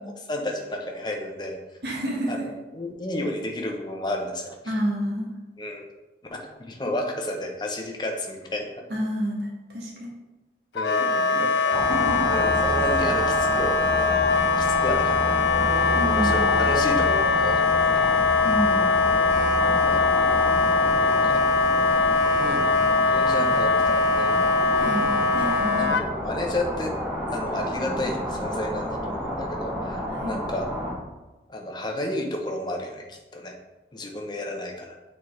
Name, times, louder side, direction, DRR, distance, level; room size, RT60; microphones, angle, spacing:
voice 1, 0.3-1.6 2.3-2.4 2.7-4.7 5.6-5.8 6.3-8.7 10.7-11.8 12.3-14.2 14.6-18.0 19.8-20.1 21.0-21.6 22.4-24.4 25.7-27.0 27.3-30.7 31.5-33.5 33.9-35.0, left 1 dB, 25° left, 2 dB, 0.7 m, -32 dB
voice 2, 1.8-2.5 4.7-5.3 8.9-9.5 9.7-10.1 11.0-11.5 11.8-12.3 15.9-16.5 18.4-18.9 24.7-25.1 25.3-25.8 30.2-30.4, equal, 70° right, -3 dB, 1.6 m, -29 dB
Wind instrument woodwind instrument, 10.8-26.0, left 4 dB, 85° left, 0.4 m, -22 dB
sound 1, 11.7-30.9, equal, 5° right, 1.1 m, -30 dB
6.9 x 4.3 x 3.2 m, 1.1 s
head